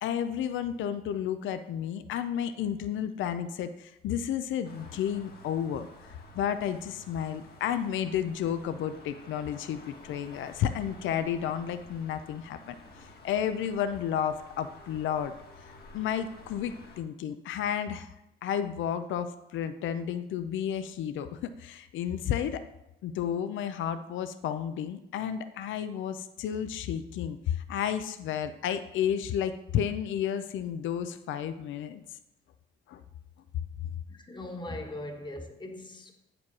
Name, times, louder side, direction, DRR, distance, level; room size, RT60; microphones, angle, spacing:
voice 1, 0.0-5.9 6.3-15.3 15.9-22.6 23.0-32.0 32.9-33.0, left 9 dB, 75° left, 10 dB, 0.5 m, -32 dB
sound 1, 4.6-17.0, left 2 dB, 50° left, 1.6 m, -52 dB
voice 2, 34.1-36.1, left 1 dB, 20° left, 4 dB, 1.3 m, -40 dB
8.5 x 5.0 x 4.7 m, 0.87 s
cardioid pair, 90°, 20 cm